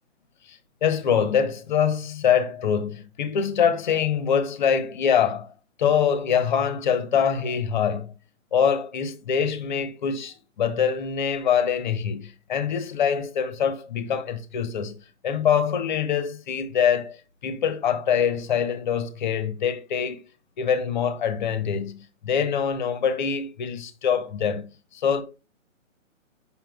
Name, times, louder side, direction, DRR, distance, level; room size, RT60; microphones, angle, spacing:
voice 1, 0.5-5.5 5.8-8.1 8.5-15.0 15.2-20.2 20.6-24.7 24.9-25.2, left 7 dB, 35° left, 0.7 m, -24 dB
7.5 x 5.6 x 2.3 m
hypercardioid pair, 150°, 39 cm